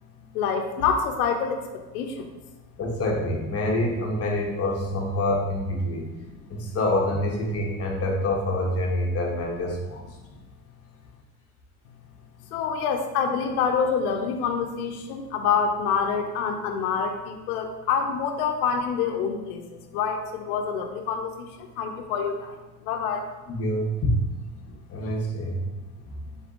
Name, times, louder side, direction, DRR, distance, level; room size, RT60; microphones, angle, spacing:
voice 1, 0.3-2.3 6.2-6.3 12.5-23.2 24.7-24.8 26.2-26.3, left 6 dB, 80° left, 4 dB, 0.7 m, -27 dB
voice 2, 2.8-6.1 6.5-10.0 23.5-24.1 24.9-25.6, left 1 dB, 35° left, 0 dB, 1.0 m, -26 dB
3.9 x 3.5 x 3.7 m, 1.1 s
supercardioid pair, 105°, 43 cm